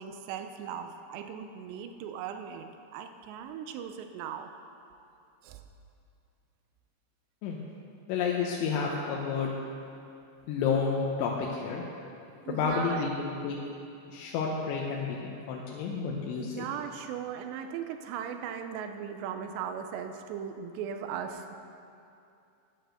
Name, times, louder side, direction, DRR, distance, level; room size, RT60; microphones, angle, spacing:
voice 1, 0.0-4.5 5.4-5.6 12.5-13.1 16.4-21.6, right 8 dB, 80° right, 7 dB, 2.6 m, -38 dB
voice 2, 8.1-9.5 10.5-11.8 12.5-13.6 14.1-16.7, left 5 dB, 85° left, -2 dB, 3.2 m, -30 dB
11.0 x 9.1 x 6.5 m, 2.6 s
omnidirectional pair, 5.2 m